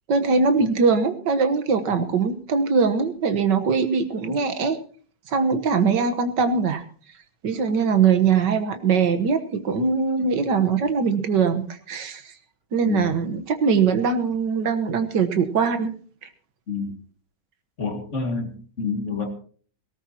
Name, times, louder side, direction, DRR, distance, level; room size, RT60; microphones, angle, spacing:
voice 1, 0.1-4.8 5.3-6.8 7.4-12.3 12.7-15.9, right 5 dB, 70° right, 9 dB, 1.9 m, -21 dB
voice 2, 12.8-13.1 16.7-16.9 17.8-19.3, left 4 dB, 40° left, 5 dB, 2.4 m, -28 dB
18.0 x 17.5 x 2.9 m, 0.43 s
omnidirectional pair, 2.0 m